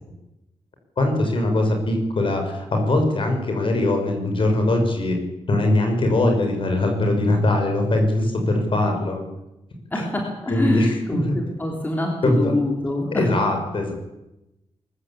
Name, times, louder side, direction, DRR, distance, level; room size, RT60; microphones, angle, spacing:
voice 1, 1.0-5.1 5.5-9.2 10.0-10.1 10.5-11.4 12.2-12.5 13.1-13.9, left 1 dB, 50° left, 4 dB, 5.7 m, -21 dB
voice 2, 9.9-13.3, left 1 dB, 15° left, 1 dB, 3.2 m, -25 dB
23.0 x 15.0 x 8.6 m, 0.95 s
wide cardioid pair, 165°, 12 cm